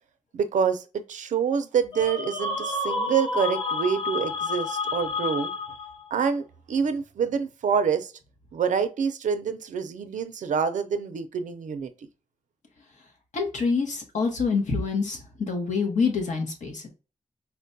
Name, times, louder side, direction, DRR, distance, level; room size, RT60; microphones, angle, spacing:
voice 1, 0.3-5.5 6.1-8.1 8.5-11.9, right 6 dB, 85° right, 0.5 m, -26 dB
sound 1, 1.9-6.1, left 3 dB, 40° left, 0.6 m, -30 dB
voice 2, 13.3-16.9, left 4 dB, 75° left, 1.0 m, -26 dB
4.2 x 2.2 x 2.6 m
wide cardioid pair, 165°, 13 cm